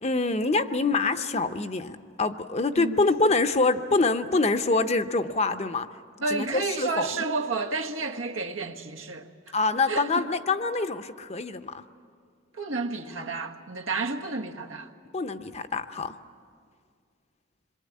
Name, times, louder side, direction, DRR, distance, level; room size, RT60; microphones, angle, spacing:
voice 1, 0.0-5.9 6.3-7.1 9.5-11.8 15.1-16.2, left 3 dB, 35° left, 0.7 m, -25 dB
voice 2, 6.2-9.3 9.7-10.3 12.5-14.9, right 3 dB, 90° right, 1.5 m, -31 dB
26.5 x 23.0 x 8.4 m
head